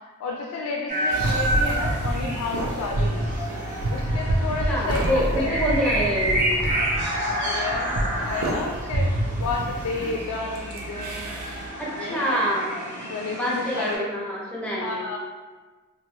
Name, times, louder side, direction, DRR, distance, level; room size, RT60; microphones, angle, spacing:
voice 1, 0.2-3.2 3.9-5.8 7.3-9.1 9.4-11.2 11.9-12.4 13.0-14.1 14.8-15.2, left 3 dB, 85° left, 0 dB, 0.3 m, -31 dB
sound 1, 0.9-14.0, right 1 dB, 35° right, 1.2 m, -30 dB
sound 2, 1.1-11.7, right 1 dB, 80° right, 0.5 m, -28 dB
voice 2, 4.7-6.5 11.8-12.7 13.3-15.1, equal, 5° left, -5 dB, 0.5 m, -26 dB
2.9 x 2.4 x 2.6 m, 1.3 s
head